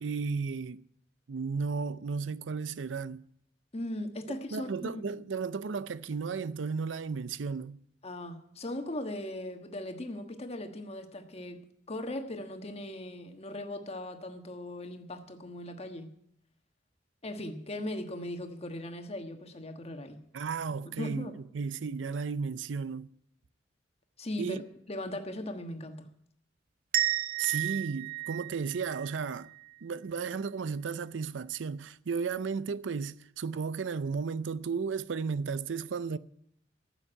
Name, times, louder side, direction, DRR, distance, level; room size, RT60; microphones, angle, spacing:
voice 1, 0.0-0.8 1.3-3.3 4.3-7.8 20.3-23.2 24.4-24.6 27.4-29.5 29.8-36.2, right 5 dB, 90° right, 0.5 m, -34 dB
voice 2, 3.7-5.0 8.0-11.6 11.9-16.1 17.2-20.2 20.8-21.3 24.2-24.6 24.9-26.1, left 1 dB, 35° left, 1.4 m, -38 dB
sound 1, 26.9-29.7, right 13 dB, 55° right, 0.9 m, -33 dB
14.5 x 7.1 x 10.0 m
head